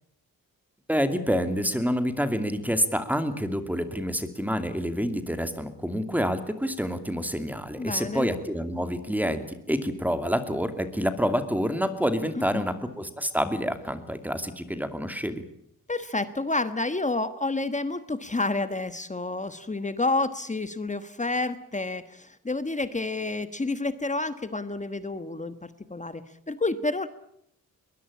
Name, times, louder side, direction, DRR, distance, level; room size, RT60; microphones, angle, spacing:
voice 1, 0.9-15.4, equal, 5° right, 9 dB, 2.6 m, -28 dB
voice 2, 7.8-8.3 12.5-12.6 15.9-27.1, left 2 dB, 20° left, 12 dB, 1.4 m, -29 dB
22.0 x 21.0 x 8.6 m, 0.73 s
wide cardioid pair, 100°, 34 cm